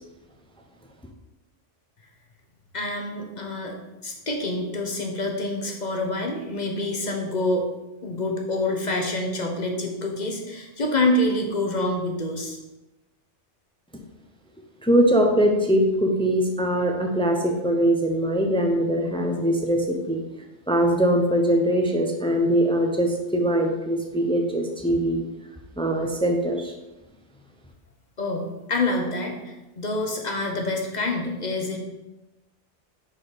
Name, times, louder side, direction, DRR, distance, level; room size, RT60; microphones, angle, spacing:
voice 1, 2.7-3.8 4.0-7.7 8.0-12.6 28.2-31.8, left 2 dB, 40° left, 2 dB, 0.9 m, -27 dB
voice 2, 14.8-20.2 20.7-25.2 25.8-26.7, right 1 dB, 5° left, 2 dB, 0.5 m, -22 dB
6.6 x 4.1 x 5.1 m, 1.0 s
omnidirectional pair, 1.3 m